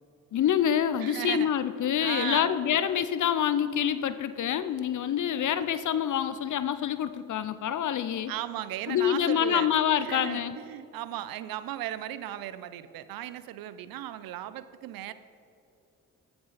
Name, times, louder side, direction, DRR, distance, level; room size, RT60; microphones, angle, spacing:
voice 1, 0.3-8.3 8.9-10.6, left 9 dB, 60° left, 13 dB, 0.6 m, -26 dB
voice 2, 1.0-1.5 2.0-2.6 8.3-9.7 10.0-15.1, right 13 dB, 75° right, 14 dB, 0.6 m, -36 dB
15.0 x 6.8 x 4.1 m, 2.7 s
supercardioid pair, 45°, 35 cm